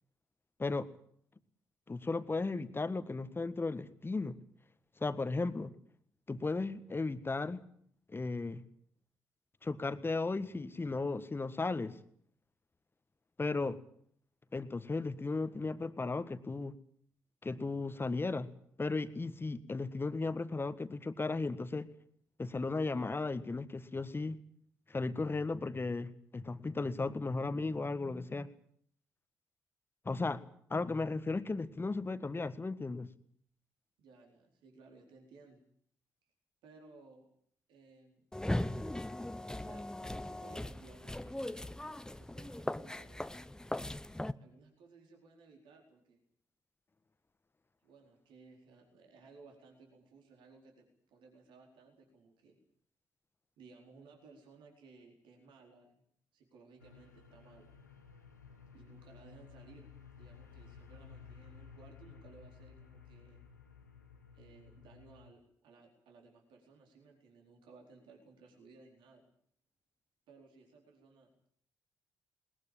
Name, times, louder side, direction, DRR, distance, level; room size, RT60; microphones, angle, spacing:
voice 1, 1.9-4.3 5.0-5.7 6.3-7.6 8.1-8.6 9.6-11.9 13.4-13.8 14.5-16.7 17.4-18.5 18.8-21.9 22.4-24.4 24.9-28.5 30.0-30.4 30.7-33.1, left 3 dB, 25° left, 13 dB, 1.6 m, -35 dB
voice 2, 34.0-35.6 36.6-37.3 37.7-38.3 39.6-43.2 44.4-46.2 47.8-52.6 53.6-56.0 56.3-57.7 58.7-59.9 60.2-63.4 64.3-69.3 70.3-71.3, right 4 dB, 65° right, 1 dB, 4.3 m, -59 dB
sound 1, 38.3-44.3, left 1 dB, 10° left, 0.9 m, -39 dB
sound 2, 56.8-65.3, left 6 dB, 90° left, 1.3 m, -55 dB
20.5 x 20.5 x 8.7 m, 0.63 s
figure-of-eight pair, 40°, 9 cm